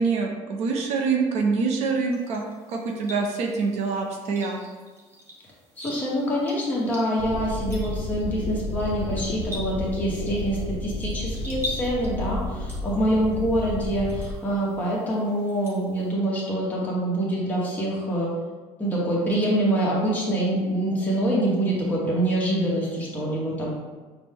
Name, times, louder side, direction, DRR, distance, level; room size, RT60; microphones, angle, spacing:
voice 1, 0.0-2.4 2.7-4.6, right 4 dB, 60° right, 2 dB, 0.5 m, -25 dB
sound 1, 2.1-16.1, left 1 dB, 20° right, 0.8 m, -43 dB
voice 2, 5.8-18.3 18.8-23.7, right 1 dB, 15° left, -6 dB, 1.0 m, -25 dB
sound 2, 7.2-14.3, left 2 dB, 50° left, 0.4 m, -32 dB
6.0 x 2.1 x 3.3 m, 1.3 s
cardioid pair, 165°, 13 cm